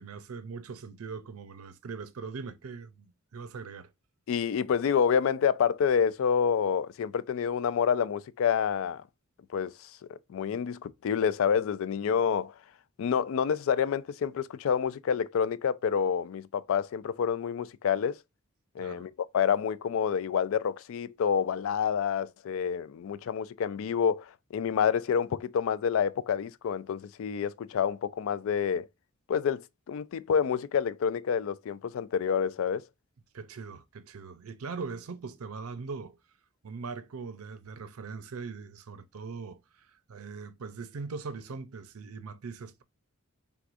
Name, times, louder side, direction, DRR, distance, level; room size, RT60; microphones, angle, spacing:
voice 1, 0.0-3.9 18.8-19.1 33.3-36.2 36.6-39.6 40.1-42.8, right 4 dB, 90° right, 0.5 m, -41 dB
voice 2, 4.3-9.0 9.5-12.5 13.0-18.2 18.8-28.9 29.3-32.8, left 7 dB, 65° left, 0.3 m, -28 dB
4.7 x 3.5 x 2.5 m
head